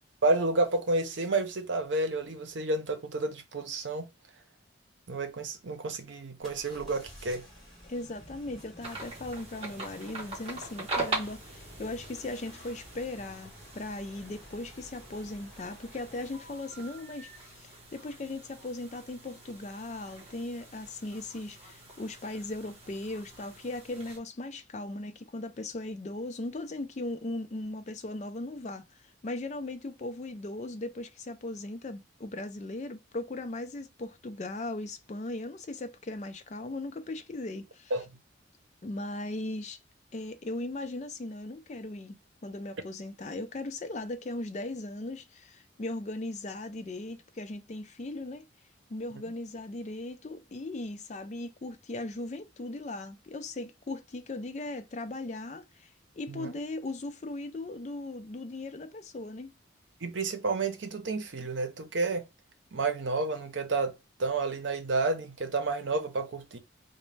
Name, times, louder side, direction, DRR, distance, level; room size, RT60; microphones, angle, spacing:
voice 1, 0.2-4.1 5.1-7.5 37.9-38.0 56.3-56.5 60.0-62.3 62.7-66.6, right 3 dB, 75° right, 0.7 m, -30 dB
sound 1, 6.4-16.6, equal, ahead, 1.5 m, -52 dB
voice 2, 7.8-37.9 38.8-39.8 40.1-48.4 48.9-59.5, left 2 dB, 35° left, 0.4 m, -38 dB
sound 2, 8.8-24.2, right 2 dB, 30° right, 1.0 m, -42 dB
3.9 x 2.2 x 3.2 m
head